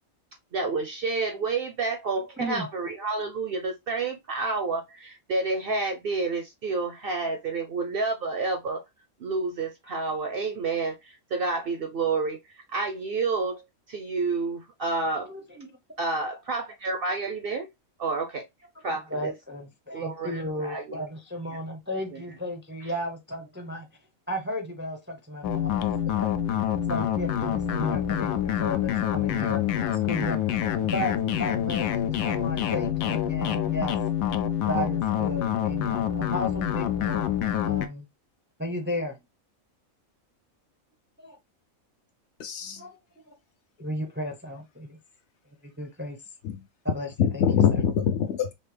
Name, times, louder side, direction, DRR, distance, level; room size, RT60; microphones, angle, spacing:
voice 1, 0.5-8.8 9.2-13.6 13.9-15.3 16.0-17.7 18.0-18.5 18.8-19.3 19.9-21.0 22.1-22.2 22.8-22.9, right 3 dB, 60° right, 0.6 m, -29 dB
voice 2, 15.3-15.7 18.9-23.9 24.3-25.7 26.1-26.2 26.9-30.4 30.8-34.0 34.6-37.4 37.7-38.1 38.6-39.2 41.2-41.4 42.8-43.0 43.3-43.4 43.8-45.0 45.6-46.2 46.8-47.1 47.3-47.4, equal, 15° right, 0.4 m, -34 dB
sound 1, 25.4-37.9, left 10 dB, 90° left, 1.0 m, -26 dB
voice 3, 42.4-42.8 46.4-46.6 47.2-48.5, left 8 dB, 65° left, 0.8 m, -24 dB
5.4 x 2.0 x 3.3 m
omnidirectional pair, 1.4 m